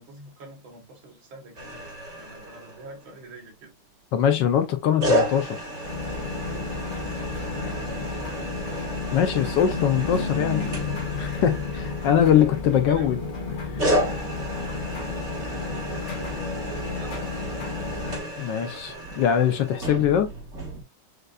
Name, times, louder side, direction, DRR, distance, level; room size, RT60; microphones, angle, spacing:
voice 1, 0.0-1.9 2.2-3.7 6.7-8.6 11.2-12.5 12.9-13.2 15.6-17.6 18.6-19.6, right 2 dB, 75° right, 2.2 m, -46 dB
sound 1, 1.5-3.1 5.0-12.8 13.8-20.8, equal, 40° right, 1.5 m, -32 dB
voice 2, 4.1-5.6 9.1-10.8 11.2-13.2 13.6-14.0 18.4-20.3, left 9 dB, 75° left, 1.2 m, -22 dB
Car passing by / Truck, 5.8-19.5, left 5 dB, 90° left, 2.0 m, -39 dB
sound 2, 5.8-18.2, left 3 dB, 40° left, 0.7 m, -33 dB
6.6 x 2.5 x 2.2 m
omnidirectional pair, 2.2 m